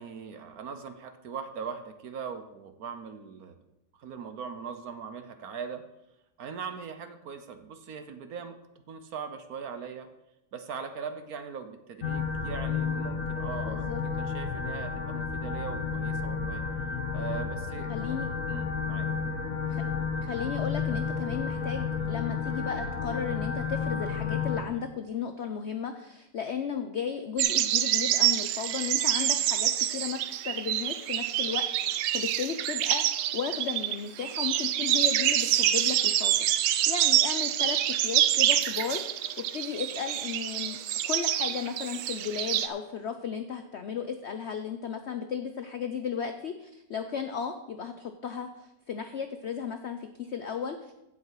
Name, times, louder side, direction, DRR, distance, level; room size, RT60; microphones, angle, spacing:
voice 1, 0.0-3.6 3.9-5.8 6.4-8.5 8.9-10.1 10.5-13.8 14.2-16.6 17.1-18.2 18.5-19.1, right 6 dB, 65° right, 8 dB, 1.2 m, -40 dB
sound 1, 12.0-24.6, left 5 dB, 50° left, 1.2 m, -31 dB
voice 2, 13.7-14.0 17.9-18.3 19.7-19.8 20.2-40.8 41.1-50.9, left 7 dB, 70° left, 7 dB, 0.6 m, -35 dB
sound 2, 27.4-42.7, right 12 dB, 90° right, 1.3 m, -27 dB
15.5 x 5.7 x 4.7 m, 0.90 s
omnidirectional pair, 1.9 m